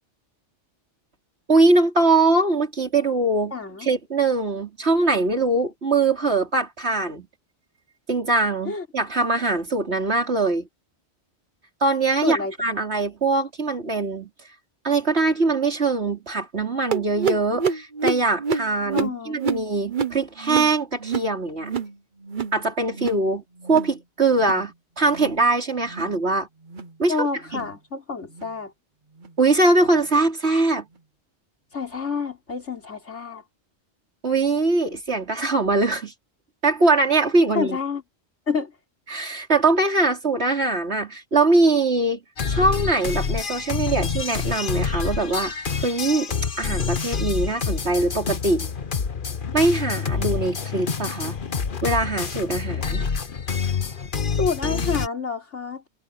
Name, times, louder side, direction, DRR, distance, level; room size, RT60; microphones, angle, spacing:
voice 1, 1.5-3.5 3.8-7.3 8.1-10.7 11.8-14.3 14.8-21.7 22.5-26.5 27.0-27.3 27.5-27.6 29.4-30.9 34.2-36.1 36.6-37.8 39.1-42.2 42.5-45.5 45.8-48.7 49.5-51.4 51.8-53.0, right 3 dB, 65° right, 4.1 m, -22 dB
voice 2, 3.5-3.9 8.6-8.9 12.2-12.5 18.9-19.4 27.1-28.7 31.7-33.4 37.5-38.0 38.5-38.8 54.3-55.9, left 4 dB, 85° left, 4.5 m, -28 dB
sound 1, 16.9-22.0 22.2-22.6 22.9-23.3 23.6-24.0 24.3-24.7 25.1-25.4 25.9-26.1 26.7-26.9 27.5-27.7 28.3-28.5 29.2-29.3 30.1-30.2, right 5 dB, 45° right, 1.2 m, -28 dB
sound 2, 42.4-55.1, left 6 dB, 50° left, 1.3 m, -27 dB
omnidirectional pair, 1.2 m